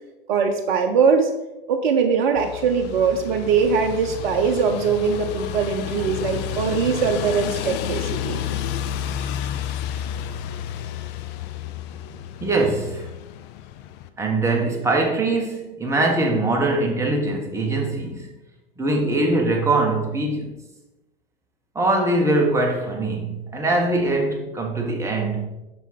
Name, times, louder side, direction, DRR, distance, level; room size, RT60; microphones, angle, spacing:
voice 1, 0.3-1.3 1.7-8.4, right 5 dB, 55° right, 4 dB, 0.8 m, -21 dB
sound 1, 2.4-14.1, left 10 dB, 35° left, 0.5 m, -31 dB
voice 2, 12.4-13.1 14.2-18.3 18.8-20.5 21.7-25.5, right 2 dB, 10° right, 0 dB, 1.6 m, -22 dB
7.1 x 5.7 x 4.0 m, 0.99 s
figure-of-eight pair, 85°, 29 cm